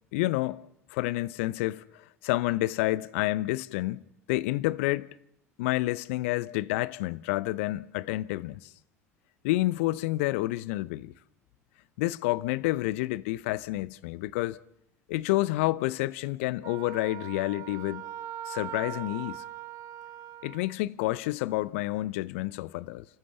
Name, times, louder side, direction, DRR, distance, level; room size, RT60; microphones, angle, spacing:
voice 1, 0.1-0.6 0.9-4.0 4.3-5.1 5.6-8.7 9.4-11.1 12.0-14.6 15.1-18.0 18.5-19.4 20.4-23.1, left 18 dB, 65° left, 0.7 m, -29 dB
Wind instrument woodwind instrument, 16.6-20.8, right 11 dB, 50° right, 1.2 m, -41 dB
29.5 x 15.0 x 7.0 m
figure-of-eight pair, 70°, 8 cm